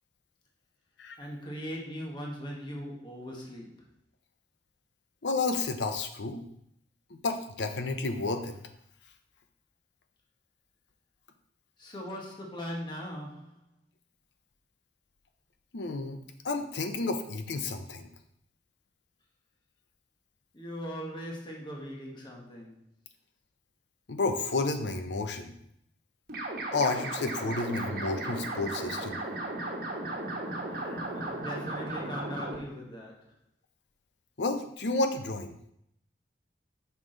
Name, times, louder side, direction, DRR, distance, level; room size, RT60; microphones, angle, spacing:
voice 1, 1.2-3.9 11.8-13.6 20.5-22.8 31.1-33.3, equal, 25° left, -1 dB, 1.2 m, -40 dB
voice 2, 5.2-6.4 7.1-8.6 15.7-16.2 16.4-18.1 24.1-25.5 26.7-29.2 30.7-31.0 34.4-35.6, left 3 dB, 70° left, 7 dB, 0.7 m, -31 dB
sound 1, 26.3-32.6, right 2 dB, 50° right, 1.3 m, -35 dB
5.8 x 4.7 x 3.8 m, 0.74 s
head